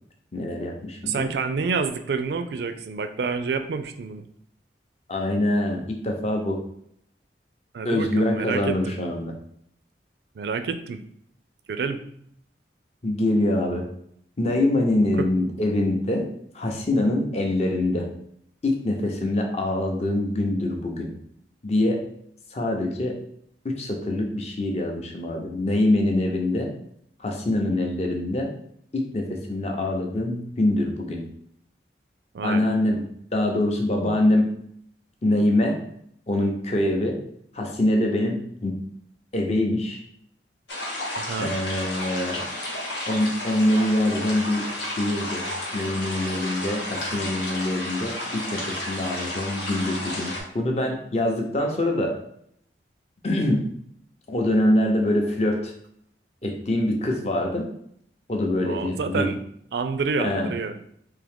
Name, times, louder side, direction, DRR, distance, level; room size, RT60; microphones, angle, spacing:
voice 1, 0.3-1.3 5.1-6.6 7.8-9.3 13.0-13.9 14.4-16.3 16.5-18.1 18.6-21.1 21.6-22.0 22.5-23.2 23.6-26.7 27.2-28.5 28.9-31.2 32.4-33.0 33.3-34.5 35.2-35.8 36.3-37.2 37.5-38.8 39.3-40.0 41.4-42.5 43.1-45.5 45.7-52.2 53.2-53.7 54.3-55.7 56.4-57.7 58.3-59.3 60.2-60.5, left 1 dB, 35° left, 2 dB, 0.6 m, -24 dB
voice 2, 1.0-4.3 7.7-8.9 10.3-11.0 11.7-12.1 15.2-15.3 32.3-32.7 41.2-41.5 58.6-59.4 59.7-60.8, right 4 dB, 70° right, 9 dB, 0.4 m, -28 dB
sound 1, 40.7-50.4, left 1 dB, 90° left, 1.3 m, -32 dB
3.6 x 2.8 x 3.5 m, 0.70 s
head